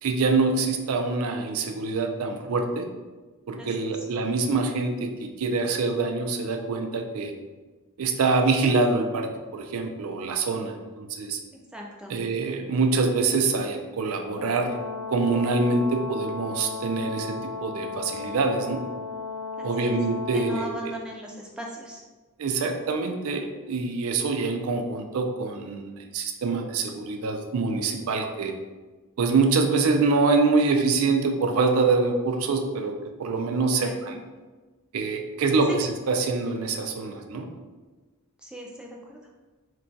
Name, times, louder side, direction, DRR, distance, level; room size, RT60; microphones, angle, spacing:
voice 1, 0.0-2.9 3.5-7.3 8.0-11.4 12.1-14.8 15.1-17.3 17.6-18.8 19.6-20.9 22.4-28.5 29.2-32.9 33.2-34.2 34.9-37.5, right 3 dB, 70° right, 4 dB, 0.4 m, -25 dB
voice 2, 3.6-3.9 11.7-12.1 19.6-20.0 20.3-22.0 33.5-33.9 35.7-35.8 38.4-39.2, right 1 dB, 5° right, -1 dB, 0.3 m, -38 dB
Brass instrument, 14.3-20.7, left 4 dB, 75° left, 0.6 m, -35 dB
2.3 x 2.3 x 3.9 m, 1.3 s
head